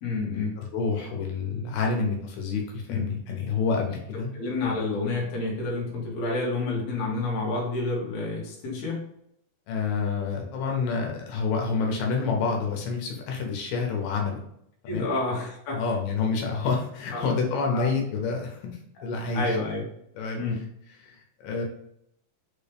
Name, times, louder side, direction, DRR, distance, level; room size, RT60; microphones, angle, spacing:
voice 1, 0.0-0.6 2.9-3.0 4.3-9.0 14.9-15.8 17.1-17.2 17.7-17.9 19.3-19.8 20.4-20.6, left 3 dB, 60° left, -3 dB, 2.1 m, -29 dB
voice 2, 0.7-4.3 9.7-14.4 14.8-15.1 15.8-19.5 20.2-20.4 21.0-21.6, left 4 dB, 85° left, 0 dB, 2.5 m, -28 dB
5.8 x 2.4 x 3.3 m, 0.73 s
omnidirectional pair, 3.8 m